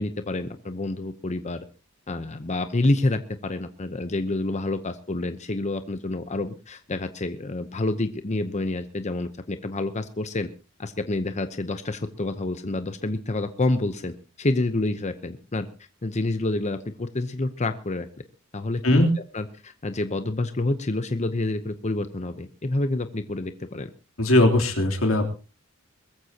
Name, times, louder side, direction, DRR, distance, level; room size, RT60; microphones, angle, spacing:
voice 1, 0.0-1.6 2.1-10.5 10.8-15.7 16.0-18.1 18.5-19.1 19.3-23.9, left 2 dB, 35° left, 9 dB, 0.8 m, -28 dB
voice 2, 24.2-25.3, left 1 dB, 85° left, 3 dB, 3.3 m, -19 dB
21.5 x 14.5 x 2.9 m, 0.34 s
head